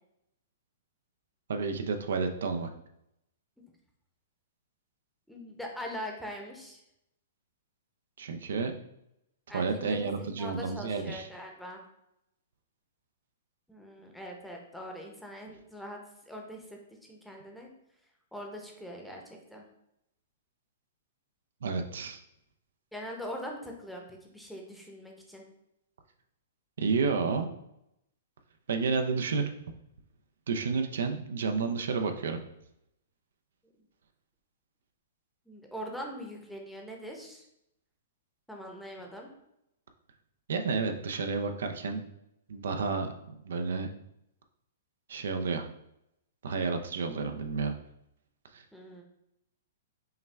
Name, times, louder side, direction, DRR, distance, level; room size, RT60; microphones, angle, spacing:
voice 1, 1.5-2.7 8.2-8.8 9.5-11.3 21.6-22.2 26.8-27.5 28.7-29.4 30.5-32.4 40.5-42.0 42.5-43.1 43.4-43.9 45.1-45.6 46.4-47.7 48.5-48.6, right 4 dB, 75° right, 6 dB, 0.5 m, -30 dB
voice 2, 5.3-6.8 9.5-11.8 13.7-16.0 16.3-16.8 17.1-17.7 18.3-19.6 22.9-25.5 35.5-37.4 38.5-39.3 48.7-49.0, equal, ahead, 0 dB, 0.8 m, -42 dB
5.5 x 2.2 x 3.3 m, 0.81 s
hypercardioid pair, 140°, 0 cm